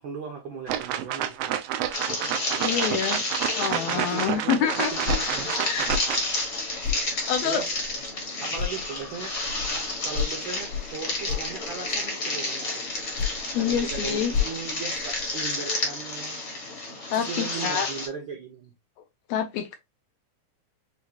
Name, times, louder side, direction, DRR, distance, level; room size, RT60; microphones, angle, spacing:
voice 1, 0.0-1.5 2.5-2.9 3.9-6.0 7.1-7.8 8.4-9.3 10.0-12.7 13.5-16.4 17.1-18.7, right 5 dB, 70° right, 1.1 m, -38 dB
sound 1, 0.7-6.2, right 11 dB, 90° right, 1.4 m, -29 dB
sound 2, 1.9-18.1, left 2 dB, 45° left, 0.9 m, -31 dB
voice 2, 2.6-3.2 3.5-4.9 5.6-5.9 7.1-7.6 13.5-14.3 17.1-17.9 19.3-19.8, left 8 dB, 80° left, 1.7 m, -27 dB
sound 3, 4.8-8.2 8.5-12.1 12.9-15.6, left 7 dB, 65° left, 1.5 m, -34 dB
6.3 x 2.4 x 2.8 m
omnidirectional pair, 3.4 m